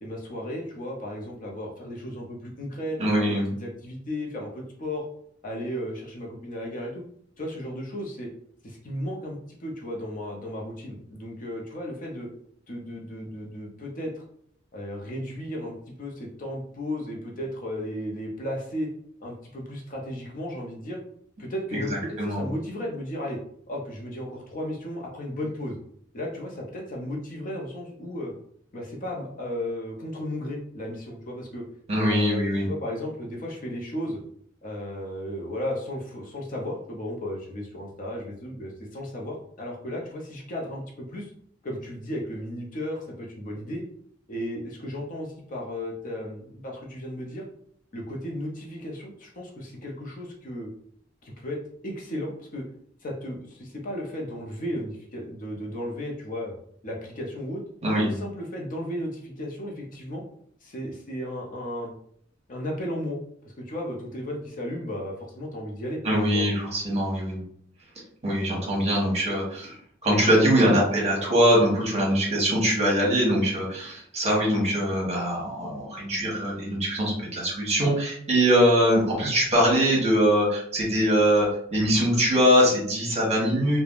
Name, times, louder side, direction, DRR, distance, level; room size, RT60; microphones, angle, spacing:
voice 1, 0.0-5.1 5.4-7.0 7.4-8.3 8.6-12.3 12.7-14.2 14.7-18.9 19.2-21.0 21.4-23.4 23.7-25.8 26.1-28.3 28.7-31.6 32.1-34.2 34.6-41.3 41.6-43.8 44.3-47.4 47.9-50.7 51.2-52.7 53.0-56.5 56.8-57.6 58.0-60.2 60.6-61.9 62.5-63.2 63.6-66.0 66.3-66.4, left 1 dB, 45° left, -1 dB, 0.6 m, -34 dB
voice 2, 3.0-3.5 21.7-21.9 22.2-22.4 31.9-32.7 57.8-58.2 66.0-67.4 68.2-69.8 70.0-83.8, equal, 35° right, -4 dB, 1.1 m, -22 dB
3.3 x 2.1 x 2.4 m, 0.65 s
head